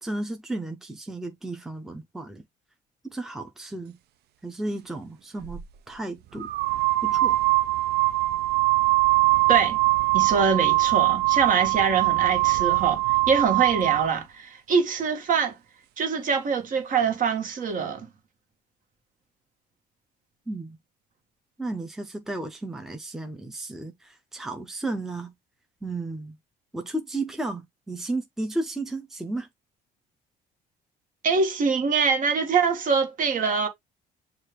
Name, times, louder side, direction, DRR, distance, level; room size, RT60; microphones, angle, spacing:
voice 1, 0.0-2.4 3.0-4.0 4.4-6.5 7.0-7.4 20.5-20.8 21.6-25.3 25.8-26.4 26.7-29.5, right 2 dB, ahead, 0.6 m, -33 dB
sound 1, 5.4-5.6 6.4-14.1, right 20 dB, 70° right, 0.5 m, -22 dB
voice 2, 10.1-13.0 13.3-15.6 16.0-18.1 31.2-33.7, right 6 dB, 50° right, 1.3 m, -24 dB
6.3 x 2.4 x 3.2 m
cardioid pair, 110°, 17 cm